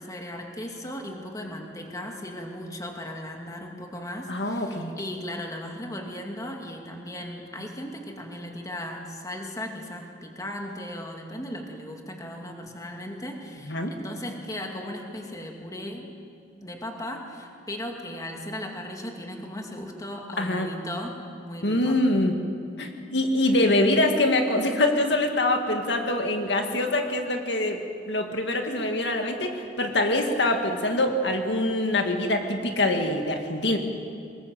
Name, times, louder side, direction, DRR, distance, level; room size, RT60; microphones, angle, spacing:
voice 1, 0.0-16.1 16.6-22.0, left 1 dB, 20° left, 1 dB, 2.4 m, -37 dB
voice 2, 4.3-4.9 13.7-13.9 20.4-20.7 21.6-22.4 22.8-27.8 28.1-33.8, left 1 dB, 75° left, 4 dB, 2.1 m, -24 dB
24.0 x 21.0 x 7.8 m, 2.4 s
head